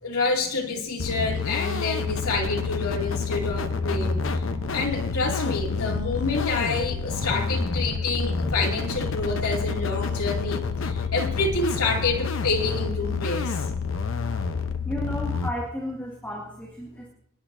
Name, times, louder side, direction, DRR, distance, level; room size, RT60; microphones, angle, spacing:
voice 1, 0.0-4.4 4.7-13.7, left 3 dB, 85° left, 0 dB, 2.6 m, -28 dB
sound 1, 1.0-15.5, left 4 dB, 60° left, 0.8 m, -28 dB
voice 2, 14.8-17.1, equal, 10° left, -4 dB, 2.0 m, -34 dB
26.5 x 10.0 x 2.7 m, 0.78 s
head